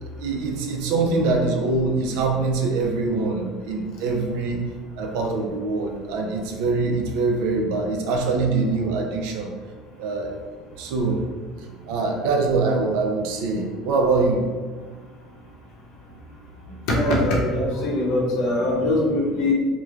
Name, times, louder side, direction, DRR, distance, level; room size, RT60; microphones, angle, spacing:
voice 1, 0.0-4.6 5.0-9.5 10.0-10.3 10.8-11.2 11.9-14.4, right 3 dB, 80° right, 2 dB, 0.4 m, -23 dB
voice 2, 16.9-19.5, left 1 dB, 70° left, -3 dB, 0.7 m, -22 dB
3.1 x 2.1 x 2.3 m, 1.4 s
supercardioid pair, 105°, 0 cm